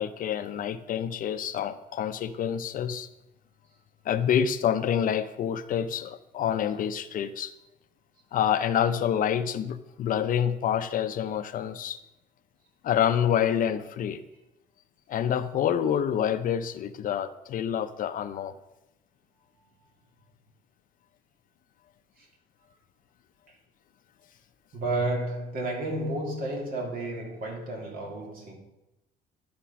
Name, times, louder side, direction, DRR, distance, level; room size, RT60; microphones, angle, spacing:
voice 1, 0.0-3.1 4.1-7.5 8.3-12.0 12.8-14.2 15.1-18.5, left 9 dB, 55° left, 12 dB, 0.6 m, -27 dB
voice 2, 24.7-28.5, right 1 dB, 55° right, 0 dB, 2.8 m, -31 dB
11.5 x 5.2 x 5.8 m, 0.93 s
cardioid pair, 110°, 17 cm